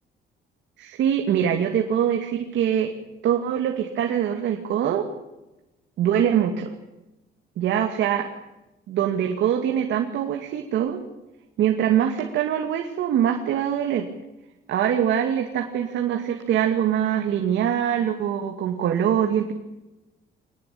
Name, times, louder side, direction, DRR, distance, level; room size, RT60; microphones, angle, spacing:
voice 1, 0.8-2.9 3.2-5.1 6.0-6.7 7.6-8.3 8.9-11.0 11.6-14.1 14.7-19.5, right 9 dB, 70° right, 3 dB, 2.5 m, -23 dB
24.0 x 19.5 x 8.7 m, 1.0 s
cardioid pair, 145°, 19 cm